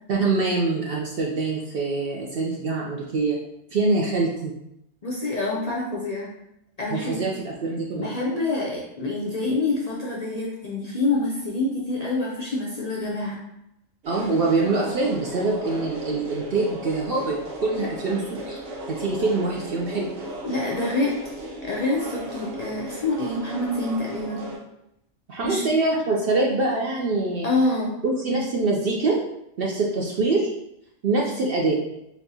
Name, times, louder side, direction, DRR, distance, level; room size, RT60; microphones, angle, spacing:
voice 1, 0.1-3.4 3.7-4.5 6.9-8.1 14.1-17.3 17.6-18.6 18.9-20.1 25.3-27.5 28.0-29.2 29.6-30.5 31.0-31.8, right 3 dB, 60° right, -2 dB, 0.6 m, -24 dB
voice 2, 5.0-6.3 6.8-7.2 8.0-13.4 20.4-21.1 21.6-24.4 25.4-25.6 27.4-27.9, left 2 dB, 55° left, -4 dB, 0.4 m, -26 dB
sound 1, 14.0-24.6, right 1 dB, 85° right, 1.5 m, -36 dB
4.2 x 2.9 x 2.7 m, 0.82 s
omnidirectional pair, 1.4 m